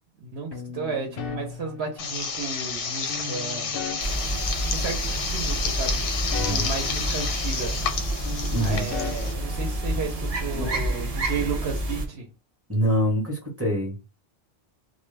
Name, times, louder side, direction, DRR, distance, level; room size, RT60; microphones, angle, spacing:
voice 1, 0.2-3.7 4.7-6.0 6.3-7.8 8.6-12.3, right 4 dB, 70° right, 0.8 m, -33 dB
sound 1, 0.5-2.5 3.1-5.4 5.7-8.0 8.2-10.3, left 5 dB, 65° left, 0.7 m, -39 dB
sound 2, 2.0-9.3, left 5 dB, 90° left, 0.9 m, -30 dB
sound 3, 4.0-12.1, right 1 dB, 50° right, 0.5 m, -29 dB
voice 2, 6.3-6.7 8.5-8.9 10.5-11.0 12.7-14.0, equal, 15° right, 0.7 m, -26 dB
2.2 x 2.1 x 3.1 m
omnidirectional pair, 1.2 m